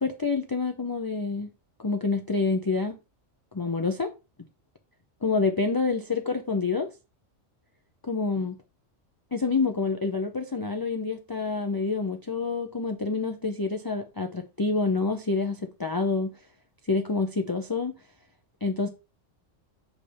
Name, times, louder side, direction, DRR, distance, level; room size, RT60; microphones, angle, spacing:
voice 1, 0.0-1.5 1.8-3.0 3.5-4.1 5.2-6.9 8.0-8.6 9.3-16.3 16.9-17.9 18.6-18.9, left 4 dB, 30° left, 0.4 m, -27 dB
7.4 x 3.4 x 5.4 m
omnidirectional pair, 1.3 m